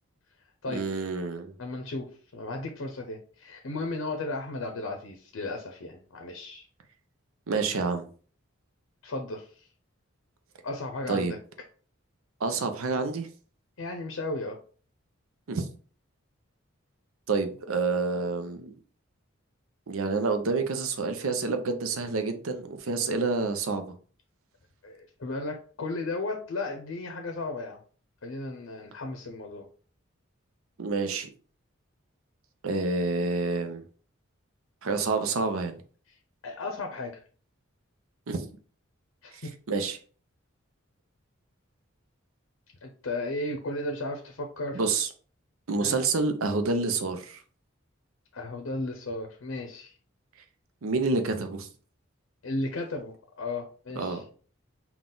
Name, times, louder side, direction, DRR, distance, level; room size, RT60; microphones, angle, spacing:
voice 1, 0.7-1.5 7.5-8.1 11.1-11.3 12.4-13.3 15.5-15.7 17.3-18.7 19.9-23.9 30.8-31.3 32.6-33.8 34.8-35.8 38.3-38.5 39.3-39.4 39.7-40.0 44.7-45.1 45.7-47.4 50.8-51.7 54.0-54.2, right 4 dB, 80° right, 0.6 m, -28 dB
voice 2, 1.6-6.7 9.0-9.7 10.6-11.4 13.8-14.6 24.8-27.8 28.2-29.7 36.4-37.2 39.2-39.8 42.8-44.8 45.8-46.0 48.3-49.9 52.4-54.2, left 2 dB, 75° left, 0.6 m, -35 dB
3.9 x 2.3 x 3.8 m
head